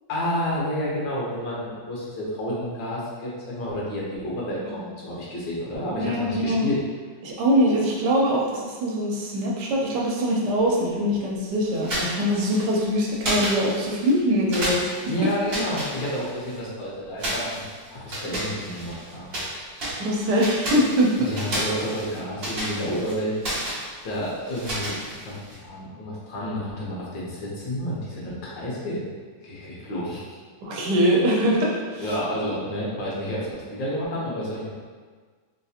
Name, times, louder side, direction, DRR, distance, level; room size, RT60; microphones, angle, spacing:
voice 1, 0.1-6.8 15.1-17.6 17.9-19.8 21.2-23.5 24.0-29.1 29.4-30.2 32.0-34.7, equal, 90° left, -6 dB, 1.6 m, -30 dB
voice 2, 6.0-6.7 7.2-14.8 20.0-21.1 30.6-32.0, equal, 80° right, -3 dB, 1.2 m, -23 dB
sound 1, 11.7-12.8 13.2-14.2 14.5-16.6 17.2-19.5 19.8-25.6, right 1 dB, 40° right, 1.0 m, -31 dB
3.7 x 2.7 x 2.4 m, 1.5 s
omnidirectional pair, 1.9 m